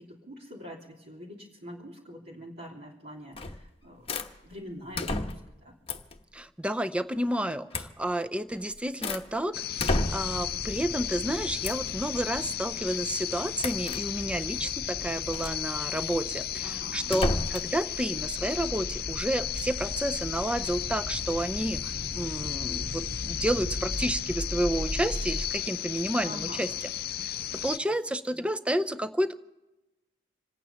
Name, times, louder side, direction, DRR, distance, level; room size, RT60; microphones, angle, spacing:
voice 1, 0.0-4.1 4.4-5.7 16.6-17.1 26.2-26.6, equal, 60° right, -5 dB, 3.1 m, -44 dB
sound 1, 3.4-3.7 4.1-4.3 4.9-5.6 5.9-6.2 7.7-7.9 8.5-9.3 9.8-10.5 11.6-11.9 13.6-14.0 15.3-15.6 17.1-17.7, left 2 dB, 30° left, 1.1 m, -31 dB
voice 2, 6.3-26.7 27.2-29.3, right 1 dB, 5° right, 11 dB, 0.6 m, -31 dB
sound 2, 9.5-27.8, left 11 dB, 55° left, 0.6 m, -35 dB
sound 3, 10.1-25.5, left 1 dB, 40° right, 2.3 m, -39 dB
27.0 x 9.2 x 5.7 m, 1.0 s
head